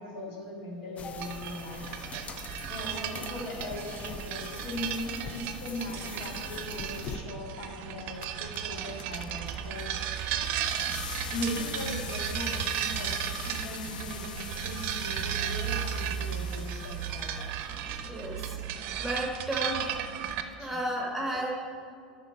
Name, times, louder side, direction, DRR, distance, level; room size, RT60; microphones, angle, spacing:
voice 1, 0.0-2.0 2.7-9.9 11.3-17.5 20.6-20.8, left 1 dB, 55° left, -1 dB, 1.9 m, -39 dB
sound 1, 1.0-7.2, left 4 dB, 30° left, 0.6 m, -43 dB
sound 2, 1.2-20.4, right 9 dB, 50° right, 0.6 m, -35 dB
sound 3, 7.6-7.7 8.0-18.1, left 9 dB, 75° left, 0.4 m, -44 dB
voice 2, 18.0-18.6 19.0-19.9 20.6-21.5, right 1 dB, 5° right, -1 dB, 1.6 m, -33 dB
12.0 x 5.3 x 4.5 m, 2.2 s
figure-of-eight pair, 80°, 5 cm